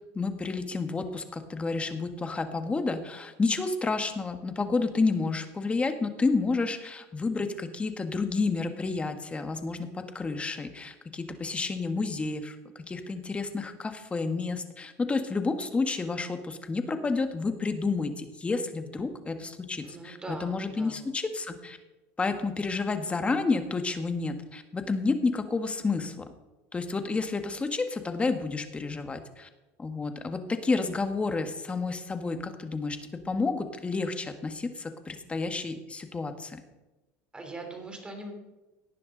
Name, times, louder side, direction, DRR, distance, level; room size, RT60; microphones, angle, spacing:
voice 1, 0.1-21.8 22.2-26.2 26.7-29.5 29.8-36.6, left 3 dB, 20° left, 7 dB, 1.5 m, -30 dB
voice 2, 19.8-21.0 37.3-38.3, right 2 dB, 15° right, 3 dB, 3.4 m, -41 dB
18.0 x 9.9 x 3.9 m, 1.1 s
supercardioid pair, 115°, 7 cm